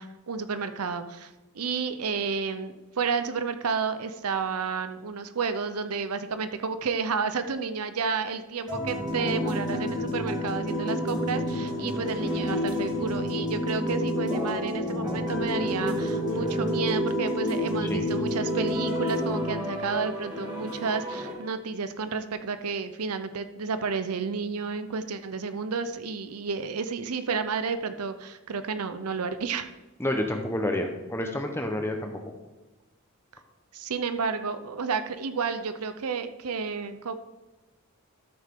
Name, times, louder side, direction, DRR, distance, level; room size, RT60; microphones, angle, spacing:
voice 1, 0.0-29.7 33.7-37.1, right 5 dB, 90° right, 11 dB, 0.7 m, -31 dB
sound 1, 8.7-21.3, left 1 dB, 20° right, 1.8 m, -29 dB
voice 2, 30.0-32.2, left 1 dB, 10° left, 4 dB, 0.9 m, -29 dB
13.0 x 6.5 x 3.7 m, 1.1 s
head